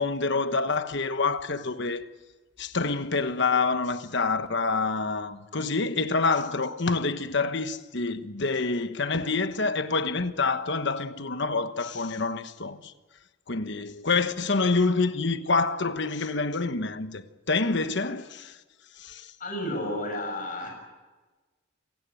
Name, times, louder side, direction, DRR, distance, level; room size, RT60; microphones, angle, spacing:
voice 1, 0.0-2.1 2.6-12.9 13.5-18.6 19.0-19.3, left 4 dB, 60° left, 1.2 m, -27 dB
voice 2, 19.4-20.7, left 1 dB, 40° left, 6.8 m, -31 dB
27.0 x 16.5 x 9.1 m
head